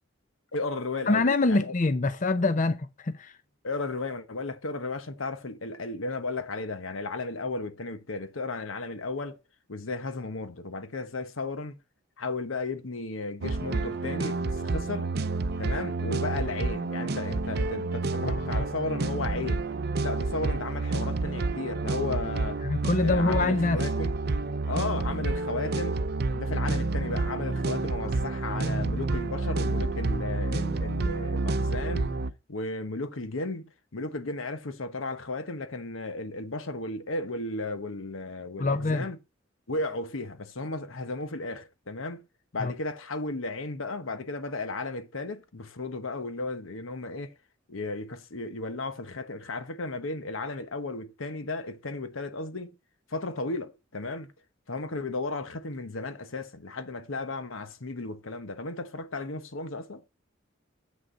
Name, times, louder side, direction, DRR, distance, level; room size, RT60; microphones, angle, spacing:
voice 1, 0.5-1.7 3.6-9.4 9.7-11.7 12.2-15.1 15.6-19.7 20.0-22.6 23.0-24.1 24.7-26.1 26.3-32.2 32.5-39.2 39.7-42.2 42.5-47.3 47.7-52.7 53.1-54.3 54.7-60.0, left 3 dB, 80° left, 1.1 m, -34 dB
voice 2, 1.1-3.3 18.2-18.6 22.6-23.8 38.6-39.1 42.6-42.7, left 3 dB, 40° left, 0.6 m, -25 dB
sound 1, 13.4-32.3, right 3 dB, 50° right, 0.6 m, -29 dB
7.6 x 6.4 x 5.3 m
head